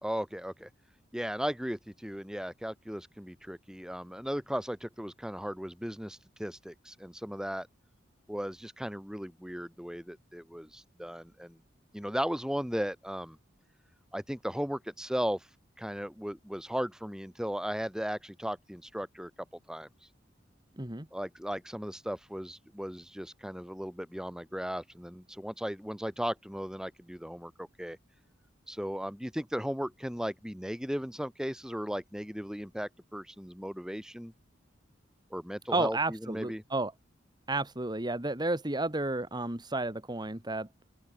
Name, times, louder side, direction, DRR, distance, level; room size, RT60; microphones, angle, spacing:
voice 1, 0.0-0.7 1.1-7.7 8.3-11.6 11.9-13.4 14.1-15.5 15.8-19.3 19.7-19.9 21.1-28.0 28.7-34.3 35.3-36.6, equal, 5° right, 4.7 m, -36 dB
voice 2, 20.8-21.1 35.7-36.9 37.5-40.7, right 2 dB, 25° right, 2.1 m, -32 dB
open air
head